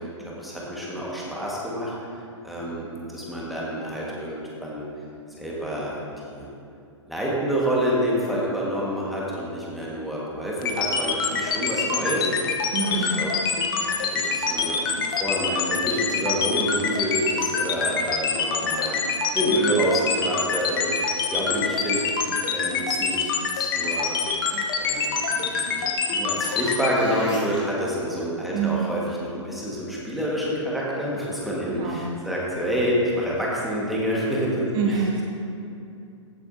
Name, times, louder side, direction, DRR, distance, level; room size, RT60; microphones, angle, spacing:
voice 1, 0.2-1.9 2.4-4.9 5.4-6.0 6.3-6.5 7.1-12.6 13.2-19.0 19.3-22.0 22.5-23.3 23.5-24.2 24.8-34.7, equal, ahead, -6 dB, 1.7 m, -28 dB
sound 1, 10.6-26.9, left 6 dB, 45° left, 1.1 m, -25 dB
voice 2, 12.7-13.1 28.5-28.8 31.8-32.0 34.7-35.2, right 6 dB, 30° right, -3 dB, 1.8 m, -25 dB
sound 2, 26.2-27.6 32.4-32.5, left 1 dB, 75° left, 2.4 m, -37 dB
15.5 x 7.7 x 2.8 m, 2.6 s
figure-of-eight pair, 115°, 16 cm